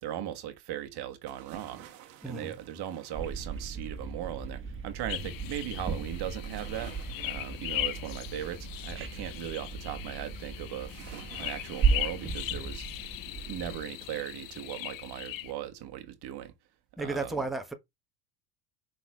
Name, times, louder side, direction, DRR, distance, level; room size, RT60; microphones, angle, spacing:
voice 1, 0.0-1.8 2.3-7.0 7.2-10.9 11.3-12.8 13.5-16.5 17.0-17.3, right 11 dB, 55° right, 1.6 m, -38 dB
sound 1, 1.3-4.1 6.4-9.0 10.9-13.2 13.6-13.7, right 11 dB, 80° right, 1.7 m, -52 dB
voice 2, 2.2-2.6 17.0-17.7, right 3 dB, ahead, 1.4 m, -33 dB
sound 2, 3.1-13.8, right 5 dB, 25° right, 1.7 m, -35 dB
sound 3, 5.1-15.5, left 15 dB, 45° left, 0.7 m, -39 dB
5.9 x 4.1 x 4.8 m
hypercardioid pair, 90°, 47 cm